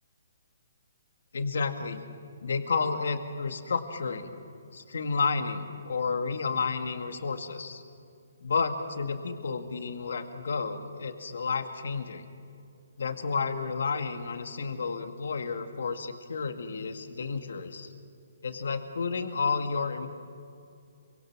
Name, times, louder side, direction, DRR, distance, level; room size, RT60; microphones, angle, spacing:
voice 1, 1.3-2.0 2.4-4.3 4.7-7.8 8.4-12.3 13.0-17.9 18.4-20.1, left 5 dB, 75° left, 6 dB, 2.0 m, -31 dB
27.0 x 24.5 x 6.1 m, 2.4 s
hypercardioid pair, 170°, 0 cm